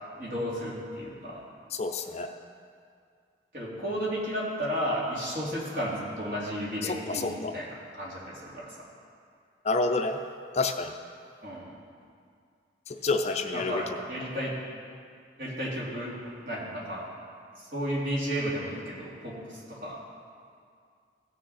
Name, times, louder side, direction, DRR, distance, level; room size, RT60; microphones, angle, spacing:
voice 1, 0.2-1.4 3.5-7.7 7.9-8.7 11.4-11.7 13.5-14.6 15.4-17.1 17.7-20.0, equal, 55° right, -6 dB, 2.8 m, -33 dB
voice 2, 1.7-2.3 6.8-7.5 9.6-10.2 10.5-10.9 12.9-13.8, left 3 dB, 40° left, 5 dB, 0.5 m, -28 dB
16.5 x 6.5 x 4.2 m, 2.3 s
head